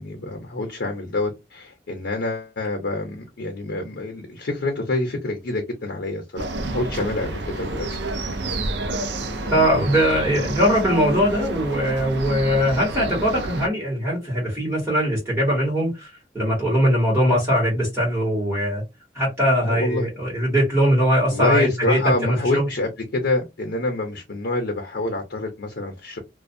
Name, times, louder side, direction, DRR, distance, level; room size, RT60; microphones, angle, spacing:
voice 1, 0.0-8.0 19.6-20.1 21.3-26.2, left 2 dB, 80° left, 0.6 m, -26 dB
sound 1, 6.4-13.7, right 2 dB, 80° right, 0.5 m, -29 dB
voice 2, 9.5-18.8 19.1-22.7, equal, 15° right, 1.2 m, -21 dB
2.4 x 2.2 x 2.6 m
head